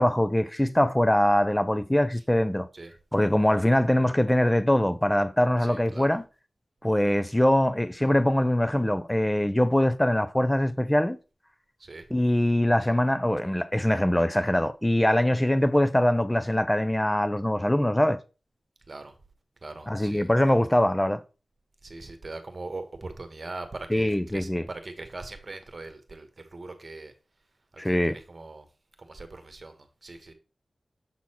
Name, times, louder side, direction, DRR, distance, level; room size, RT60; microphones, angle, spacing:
voice 1, 0.0-2.7 3.1-6.2 6.8-11.2 12.1-18.2 19.9-21.2 23.9-24.7 27.8-28.2, left 1 dB, 10° left, 0.5 m, -23 dB
voice 2, 5.6-6.2 11.8-12.1 18.9-19.1 19.6-20.3 21.8-27.1 27.7-28.7 29.0-30.3, right 3 dB, 50° right, 1.2 m, -41 dB
7.2 x 4.1 x 4.4 m
wide cardioid pair, 60°, 0 cm